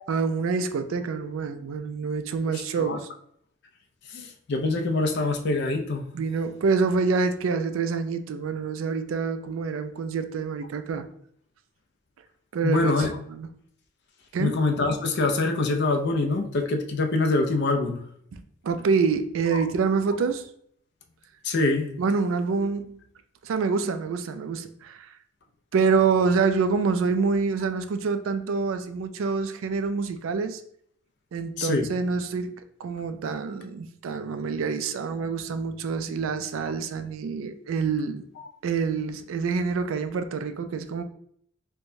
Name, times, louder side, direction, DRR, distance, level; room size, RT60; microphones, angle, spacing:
voice 1, 0.1-3.1 6.1-11.1 12.5-12.9 13.3-13.5 14.3-14.5 18.6-20.5 22.0-23.0 23.4-25.1 25.7-30.6 31.3-38.2 38.6-41.0, right 5 dB, 80° right, 0.3 m, -26 dB
voice 2, 2.5-3.0 4.1-6.0 12.6-13.2 14.4-18.0 19.5-19.6 21.4-21.9 31.6-31.9 38.4-38.5, left 3 dB, 55° left, 0.4 m, -25 dB
4.6 x 2.1 x 2.6 m
head